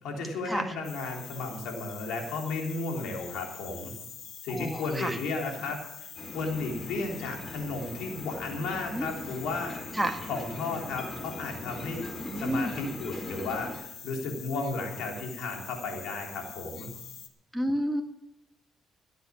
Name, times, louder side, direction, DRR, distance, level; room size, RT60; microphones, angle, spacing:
voice 1, 0.0-3.9 4.4-6.1 6.3-9.9 10.3-12.1 12.4-16.9, left 3 dB, 90° left, 1 dB, 3.6 m, -34 dB
sound 1, 0.8-17.3, left 8 dB, 70° left, 1.7 m, -45 dB
voice 2, 4.5-5.2 8.9-9.1 9.9-10.2 12.2-12.7 17.5-18.0, right 1 dB, 5° right, 3 dB, 1.7 m, -30 dB
sound 2, 6.2-13.8, left 1 dB, 30° left, 4.7 m, -41 dB
17.0 x 8.0 x 7.1 m, 0.81 s
cardioid pair, 90°, 0 cm